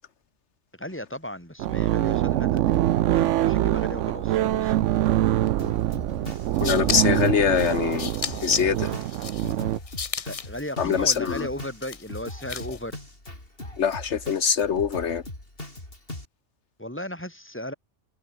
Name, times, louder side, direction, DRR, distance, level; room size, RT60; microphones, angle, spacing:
voice 1, 0.7-4.8 6.8-7.0 10.2-13.0 16.8-17.7, left 1 dB, 10° left, 7.5 m, -36 dB
sound 1, 1.6-9.8, right 13 dB, 90° right, 0.9 m, -24 dB
Drum kit, 5.6-16.2, left 1 dB, 50° left, 6.3 m, -40 dB
sound 2, 6.3-12.9, left 6 dB, 35° left, 0.7 m, -37 dB
voice 2, 6.6-8.1 8.4-8.9 10.8-11.5 13.8-15.2, left 7 dB, 75° left, 1.3 m, -23 dB
omnidirectional pair, 1.2 m